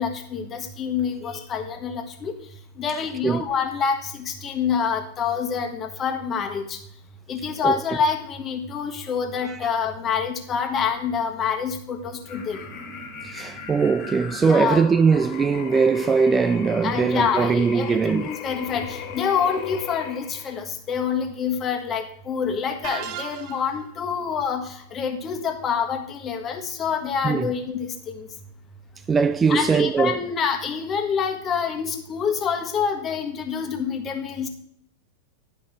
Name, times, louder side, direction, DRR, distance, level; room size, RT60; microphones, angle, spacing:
voice 1, 0.0-2.3 2.8-6.8 7.3-12.6 14.5-14.8 16.8-24.6 24.9-28.3 29.5-34.5, left 6 dB, 25° left, 1.4 m, -26 dB
sound 1, 12.2-20.6, left 7 dB, 45° left, 1.7 m, -37 dB
voice 2, 13.2-18.3 27.2-27.5 29.1-30.2, right 5 dB, 15° right, 0.3 m, -21 dB
sound 2, 22.8-23.9, right 9 dB, 45° right, 0.7 m, -34 dB
10.5 x 5.3 x 6.3 m
figure-of-eight pair, 90°, 0 cm